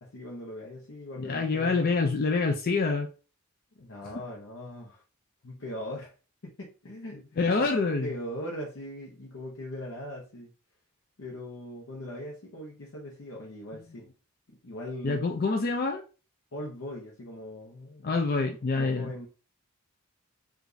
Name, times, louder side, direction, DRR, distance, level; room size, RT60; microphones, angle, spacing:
voice 1, 0.0-1.9 3.7-5.0 5.4-6.1 6.4-7.7 8.0-10.5 11.2-14.1 14.5-15.2 16.5-18.3 18.7-19.3, left 1 dB, 70° left, -2 dB, 0.8 m, -40 dB
voice 2, 1.2-3.1 7.4-8.1 15.0-16.0 18.0-19.1, left 3 dB, 45° left, 3 dB, 0.4 m, -26 dB
4.8 x 2.5 x 2.6 m, 0.35 s
head